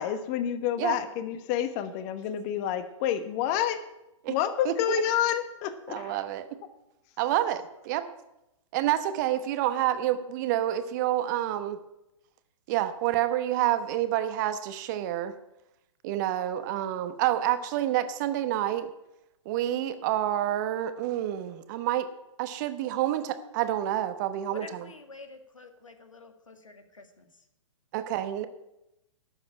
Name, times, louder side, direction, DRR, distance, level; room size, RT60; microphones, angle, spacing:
voice 1, 0.0-3.8 4.3-6.2, left 10 dB, 30° left, 11 dB, 1.2 m, -29 dB
voice 2, 4.6-5.0 5.9-6.6 7.2-8.1 8.7-11.8 12.7-15.4 16.0-18.9 19.4-22.1 22.4-24.8 27.9-28.5, right 12 dB, 35° right, 11 dB, 1.0 m, -28 dB
voice 3, 24.5-27.4, left 3 dB, 80° left, 6 dB, 2.0 m, -48 dB
12.5 x 7.2 x 9.1 m, 0.90 s
figure-of-eight pair, 115°, 17 cm